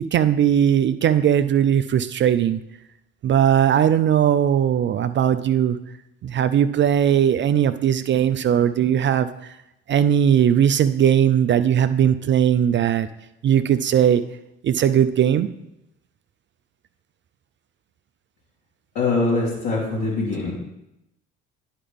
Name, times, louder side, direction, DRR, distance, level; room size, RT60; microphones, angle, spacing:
voice 1, 0.0-2.6 3.2-5.8 6.2-9.3 9.9-13.1 13.4-14.2 14.6-15.5, right 9 dB, 35° right, 11 dB, 0.4 m, -19 dB
voice 2, 18.9-20.5, left 3 dB, 65° left, -11 dB, 3.1 m, -23 dB
10.0 x 4.8 x 3.5 m, 0.86 s
hypercardioid pair, 60°, 34 cm